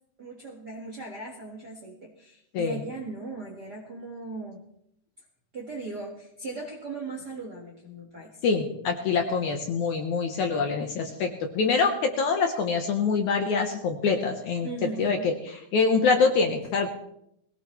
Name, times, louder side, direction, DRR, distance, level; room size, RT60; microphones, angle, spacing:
voice 1, 0.2-4.6 5.5-8.4 14.6-15.3, right 3 dB, 45° right, -2 dB, 1.3 m, -38 dB
voice 2, 8.4-16.9, left 5 dB, 65° left, 4 dB, 2.1 m, -25 dB
21.0 x 18.0 x 3.2 m, 0.75 s
omnidirectional pair, 4.4 m